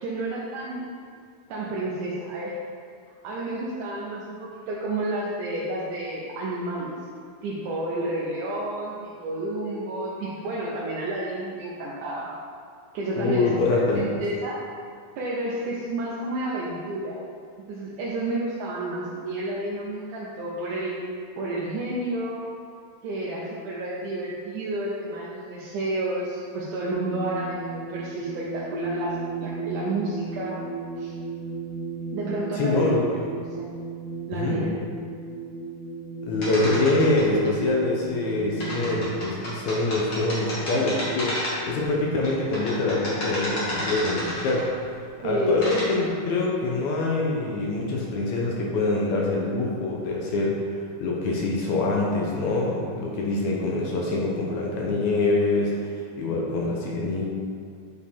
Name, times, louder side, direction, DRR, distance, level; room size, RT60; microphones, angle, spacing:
voice 1, 0.0-0.8 1.5-2.6 3.2-6.9 7.4-12.3 12.9-14.7 15.2-17.2 17.7-21.0 21.4-22.5 23.0-30.6 31.0-31.2 32.1-33.0 33.6-33.7 34.3-34.7 45.2-45.6, right 1 dB, 70° right, -6 dB, 2.1 m, -30 dB
voice 2, 13.2-14.1 32.6-33.0 34.3-34.6 36.2-44.7 45.2-50.6 51.0-57.3, left 2 dB, 75° left, -2 dB, 1.7 m, -25 dB
sound 1, 26.9-39.1, right 4 dB, 90° right, 2.8 m, -35 dB
sound 2, 36.4-37.5 38.6-41.8 42.2-44.8 45.4-45.9, equal, 40° left, 1.7 m, -31 dB
9.3 x 4.7 x 3.6 m, 2.2 s
omnidirectional pair, 4.2 m